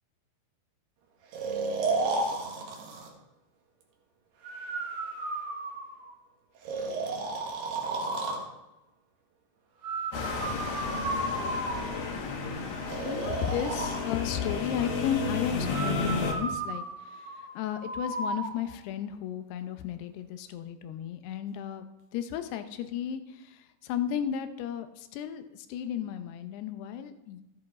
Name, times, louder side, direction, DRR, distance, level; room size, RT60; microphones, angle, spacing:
Breathing, 1.3-3.1 4.4-6.1 6.7-8.5 9.8-12.1 12.9-14.0 15.7-18.5, right 3 dB, 75° right, 3.6 m, -33 dB
sound 1, 10.1-16.3, left 4 dB, 65° left, 3.3 m, -32 dB
voice 1, 13.0-17.3 17.6-21.9 22.1-27.4, left 9 dB, 80° left, 9 dB, 2.8 m, -34 dB
13.5 x 10.0 x 4.3 m, 0.96 s
omnidirectional pair, 4.8 m